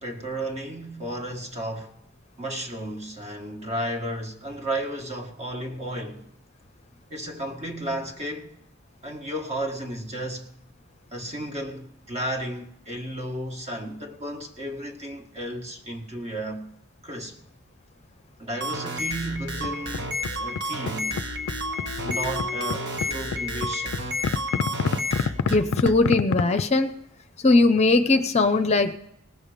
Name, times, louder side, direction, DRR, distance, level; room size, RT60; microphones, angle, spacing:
voice 1, 0.0-2.0 2.4-6.3 7.1-8.6 9.0-10.5 11.1-16.7 17.0-17.4 18.4-20.1 20.4-21.2 22.0-24.1, right 1 dB, 30° right, 1.7 m, -33 dB
sound 1, 18.5-26.0, equal, 55° right, 1.4 m, -31 dB
sound 2, 19.4-20.6 20.8-26.6, left 6 dB, 65° left, 0.4 m, -28 dB
voice 2, 25.5-26.9 27.4-29.0, left 3 dB, 30° left, 0.7 m, -20 dB
19.0 x 7.1 x 5.1 m
head